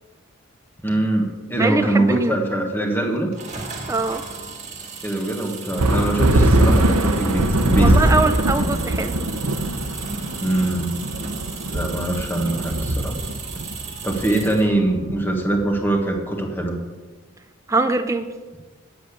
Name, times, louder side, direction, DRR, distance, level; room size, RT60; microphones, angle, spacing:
voice 1, 0.8-3.3 5.0-8.2 10.4-10.9 11.7-13.2 14.0-16.8, right 1 dB, 10° left, 2 dB, 1.4 m, -23 dB
voice 2, 1.6-2.4 3.9-4.2 7.8-9.1 17.7-18.3, right 3 dB, 15° right, 8 dB, 0.4 m, -22 dB
sound 1, 3.3-14.7, right 5 dB, 35° right, 1.6 m, -35 dB
sound 2, 5.8-15.7, right 1 dB, 85° right, 0.9 m, -21 dB
8.4 x 7.8 x 8.3 m, 1.3 s
head